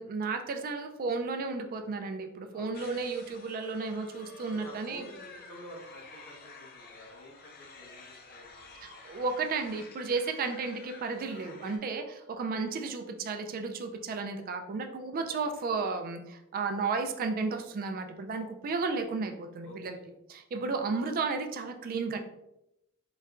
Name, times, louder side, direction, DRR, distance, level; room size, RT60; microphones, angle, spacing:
voice 1, 0.0-5.1 8.8-20.0 20.3-22.2, right 4 dB, 45° right, 6 dB, 0.3 m, -33 dB
voice 2, 2.5-2.9 4.5-8.7 15.1-15.5 19.6-20.1, equal, 80° left, -4 dB, 1.1 m, -50 dB
sound 1, 2.7-11.8, left 3 dB, 45° left, 0.5 m, -51 dB
3.9 x 2.2 x 2.4 m, 0.85 s
head